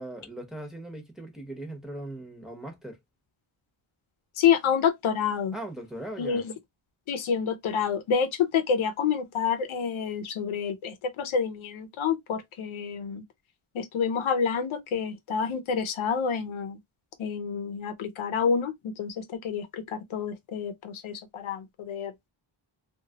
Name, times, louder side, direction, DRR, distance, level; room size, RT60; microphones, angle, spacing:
voice 1, 0.0-3.0 5.5-6.4, right 1 dB, ahead, 0.8 m, -39 dB
voice 2, 4.4-5.5 6.2-6.5 7.1-13.2 13.7-16.8 17.2-22.1, left 7 dB, 90° left, 0.7 m, -28 dB
2.8 x 2.4 x 2.7 m
wide cardioid pair, 140°, 47 cm